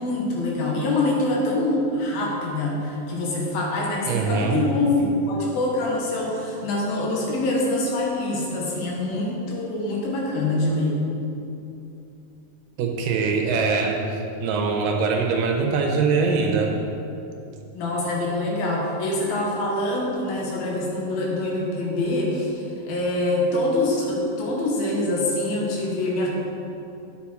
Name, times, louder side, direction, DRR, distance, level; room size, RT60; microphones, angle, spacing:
voice 1, 0.0-11.0 17.7-26.3, left 2 dB, 90° left, -3 dB, 3.4 m, -25 dB
voice 2, 4.1-4.6 12.8-14.0 14.4-16.7, right 4 dB, 80° right, 1 dB, 2.4 m, -22 dB
10.0 x 7.2 x 4.7 m, 2.8 s
omnidirectional pair, 4.1 m